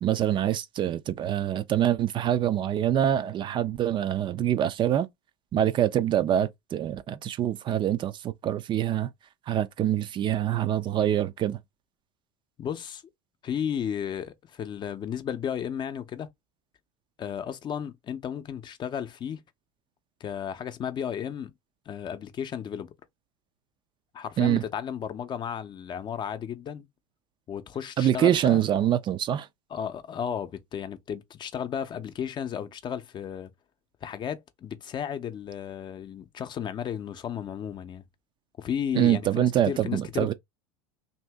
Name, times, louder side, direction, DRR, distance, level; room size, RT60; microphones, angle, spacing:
voice 1, 0.0-5.1 5.5-9.1 9.5-11.6 24.4-24.6 28.0-29.5 38.9-40.3, right 11 dB, 35° right, 0.4 m, -25 dB
voice 2, 12.6-13.0 13.4-16.3 17.2-19.4 20.2-21.5 21.9-22.9 24.1-26.9 27.5-28.6 29.7-33.5 34.0-38.0 38.6-40.3, left 8 dB, 35° left, 0.6 m, -34 dB
2.7 x 2.7 x 3.3 m
hypercardioid pair, 90°, 14 cm